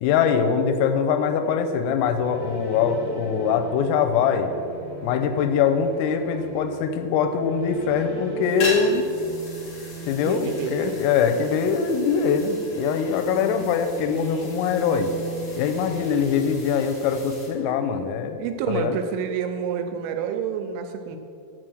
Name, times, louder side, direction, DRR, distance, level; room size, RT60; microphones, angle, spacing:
voice 1, 0.0-4.5 5.0-9.1 10.1-15.1 15.6-18.4 18.7-19.0, left 6 dB, 90° left, 7 dB, 3.3 m, -23 dB
sound 1, 1.8-17.0, right 3 dB, 65° right, 1.9 m, -39 dB
sound 2, 8.4-17.5, left 2 dB, 45° left, 2.3 m, -38 dB
voice 2, 10.1-10.9 18.4-21.2, right 7 dB, 85° right, 6 dB, 3.0 m, -29 dB
7.6 x 7.0 x 6.2 m, 2.6 s
omnidirectional pair, 5.9 m